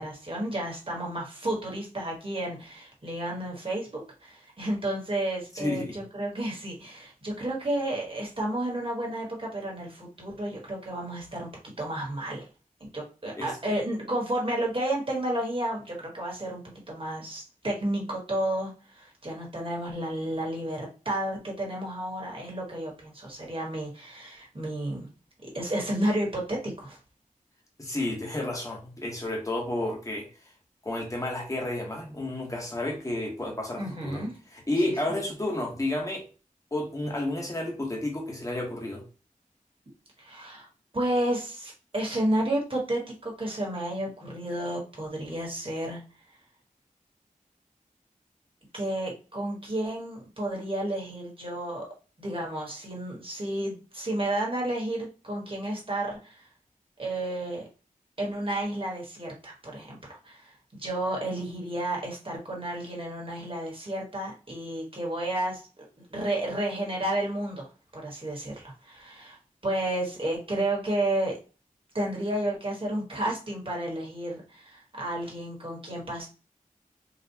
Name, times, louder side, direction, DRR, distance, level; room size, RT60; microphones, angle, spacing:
voice 1, 0.0-11.5 11.8-12.4 12.8-25.1 25.4-27.0 33.8-34.3 35.0-35.1 40.2-40.7 40.9-46.0 48.7-51.8 52.2-56.5 57.0-57.7 58.2-65.8 66.1-69.4 69.6-71.4 71.9-76.3, right 1 dB, 40° right, -2 dB, 1.6 m, -31 dB
voice 2, 5.5-6.0 13.3-13.5 27.8-30.3 30.8-34.2 34.5-36.2 36.7-39.0, left 1 dB, 25° left, -1 dB, 1.2 m, -31 dB
4.1 x 2.5 x 2.7 m, 0.35 s
wide cardioid pair, 80°, 14 cm